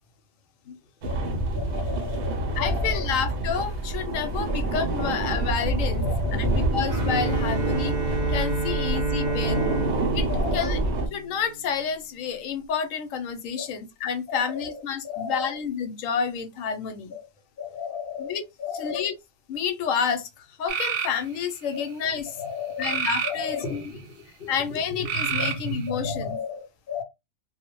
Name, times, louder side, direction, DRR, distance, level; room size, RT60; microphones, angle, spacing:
sound 1, 1.0-11.1, right 2 dB, 65° right, 0.8 m, -27 dB
voice 1, 1.5-3.1 4.5-4.6 5.0-5.1 6.0-6.5 8.7-8.9 9.2-9.8 10.3-10.8 13.6-13.7 14.3-15.5 17.1-17.3 17.6-19.1 21.7-21.9 22.3-24.5 25.0-25.1 25.4-25.6 25.9-27.0, left 7 dB, 60° left, 0.6 m, -35 dB
voice 2, 2.6-6.0 6.3-8.0 8.3-9.6 10.1-10.3 10.5-10.8 11.1-17.1 18.2-18.4 18.8-19.1 19.5-22.4 22.8-23.9 24.5-26.4, left 6 dB, 75° left, 0.9 m, -29 dB
Bowed string instrument, 6.9-11.7, right 3 dB, 45° right, 0.5 m, -29 dB
sound 2, 20.7-21.1 22.8-23.9 25.1-25.9, right 7 dB, 90° right, 1.0 m, -28 dB
2.3 x 2.0 x 2.9 m
omnidirectional pair, 1.4 m